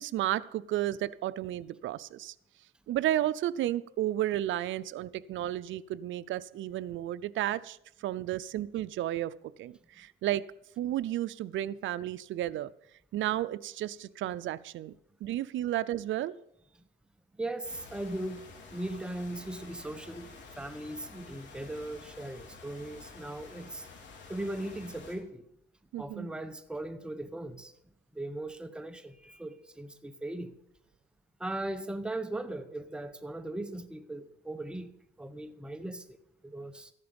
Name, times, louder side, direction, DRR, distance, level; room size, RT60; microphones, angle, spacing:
voice 1, 0.0-2.3 2.9-10.4 10.8-12.7 13.1-14.9 15.2-16.3 25.9-26.3, right 13 dB, 75° right, 16 dB, 0.6 m, -32 dB
voice 2, 17.4-18.4 18.7-23.9 24.3-25.4 26.0-27.7 28.1-30.5 31.4-36.2 36.4-36.9, right 1 dB, 5° right, 9 dB, 0.9 m, -38 dB
sound 1, 17.6-25.2, left 4 dB, 65° left, 3.5 m, -50 dB
13.5 x 11.0 x 5.2 m, 0.76 s
cardioid pair, 90°, 20 cm